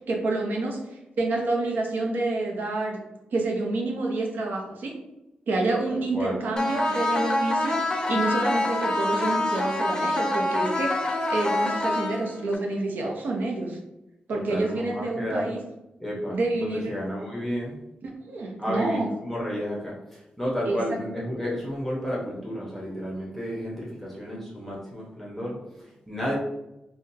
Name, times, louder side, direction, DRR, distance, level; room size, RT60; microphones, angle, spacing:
voice 1, 0.1-0.8 1.2-3.0 3.3-4.9 5.5-13.8 14.3-15.6 16.3-16.9 18.0-19.1 20.7-20.8, right 2 dB, 70° right, 0 dB, 0.8 m, -28 dB
voice 2, 5.9-6.4 14.3-15.5 16.0-17.7 18.6-26.4, equal, 5° left, -5 dB, 1.0 m, -32 dB
sound 1, 6.6-12.6, left 1 dB, 25° left, 0.7 m, -26 dB
3.6 x 2.2 x 2.7 m, 0.92 s
cardioid pair, 55°, 3 cm